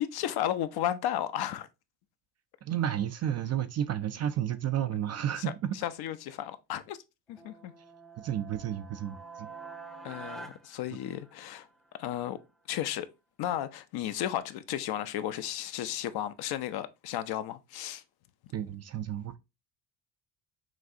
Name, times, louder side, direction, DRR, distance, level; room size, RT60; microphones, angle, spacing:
voice 1, 0.0-1.7 5.8-7.0 7.3-7.7 10.0-11.7 12.0-12.4 12.7-13.1 13.4-18.0, left 11 dB, 55° left, 0.6 m, -33 dB
voice 2, 2.6-5.7 8.2-9.5 10.1-10.2 18.5-19.4, right 10 dB, 35° right, 0.4 m, -32 dB
sound 1, 7.3-11.7, right 4 dB, ahead, 0.7 m, -47 dB
6.0 x 2.4 x 2.7 m
hypercardioid pair, 65°, 48 cm